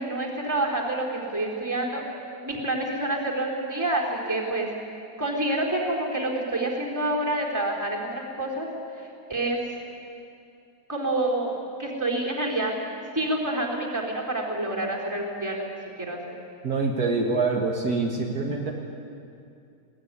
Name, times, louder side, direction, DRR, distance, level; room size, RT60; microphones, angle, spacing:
voice 1, 0.0-2.0 2.4-4.7 5.2-8.7 9.3-9.6 10.9-11.5 11.8-12.7 13.2-15.6 16.0-16.3, right 1 dB, 10° right, -2 dB, 3.9 m, -27 dB
voice 2, 16.6-18.7, right 3 dB, 60° right, 0 dB, 2.1 m, -25 dB
21.0 x 17.0 x 9.8 m, 2.5 s
omnidirectional pair, 1.8 m